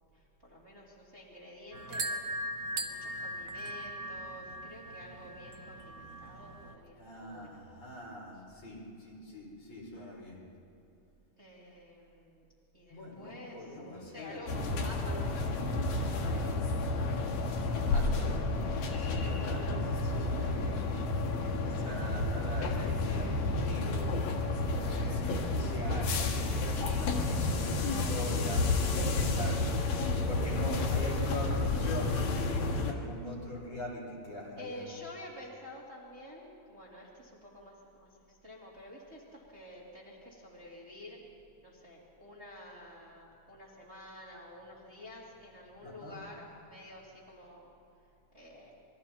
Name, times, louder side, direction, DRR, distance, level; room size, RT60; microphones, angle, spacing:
voice 1, 0.4-2.1 2.7-7.6 8.3-8.4 11.4-12.4 12.7-17.1 26.8-27.3 34.6-41.2 41.6-47.7 48.3-48.7, left 1 dB, 20° right, -5 dB, 2.6 m, -50 dB
sound 1, 1.7-6.7, right 1 dB, 60° right, 1.5 m, -39 dB
voice 2, 7.0-10.4 12.9-14.5 17.9-19.7 19.9-20.8 21.4-24.2 24.8-29.6 29.9-32.2 32.9-34.8 45.8-46.2, left 1 dB, 50° left, -3 dB, 5.8 m, -42 dB
sound 2, 14.5-32.9, left 2 dB, 85° left, 3.5 m, -31 dB
28.5 x 22.0 x 4.3 m, 2.8 s
omnidirectional pair, 3.9 m